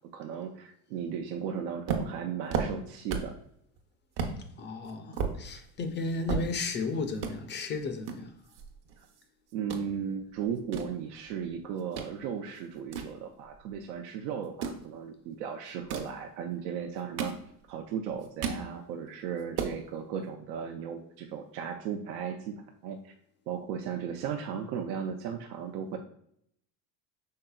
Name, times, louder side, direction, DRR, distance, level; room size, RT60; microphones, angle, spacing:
voice 1, 0.1-3.4 9.0-9.1 9.5-17.3 17.7-22.5 22.8-23.1 23.5-26.0, right 7 dB, 80° right, 0.7 m, -36 dB
sound 1, 1.9-3.4 3.8-3.9 4.2-4.4 4.8-6.8 7.1-7.3 8.0-9.2 9.5-9.9 10.4-12.1 12.5-13.8 14.4-14.8 15.7-16.2 16.8-17.8 18.1-18.7 19.1-19.2 19.4-19.8, right 6 dB, 50° right, 0.8 m, -34 dB
voice 2, 4.6-8.4, left 3 dB, 25° left, 0.4 m, -34 dB
5.6 x 3.7 x 2.3 m
supercardioid pair, 125°, 47 cm